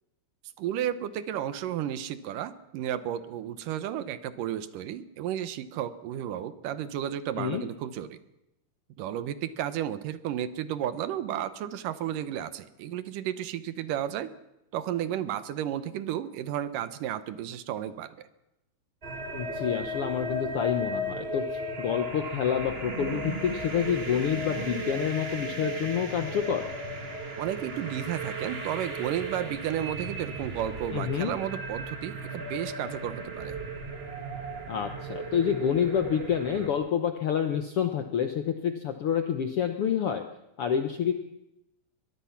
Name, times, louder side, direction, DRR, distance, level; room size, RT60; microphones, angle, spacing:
voice 1, 0.6-8.2 9.0-14.3 14.7-18.3 27.4-33.6, right 10 dB, 75° right, 13 dB, 2.5 m, -33 dB
sound 1, 19.0-36.7, right 1 dB, 25° right, 1.4 m, -35 dB
voice 2, 19.3-26.7 30.9-31.3 34.7-40.2 40.6-41.1, left 8 dB, 70° left, 7 dB, 1.4 m, -28 dB
22.0 x 22.0 x 5.9 m, 0.88 s
omnidirectional pair, 3.9 m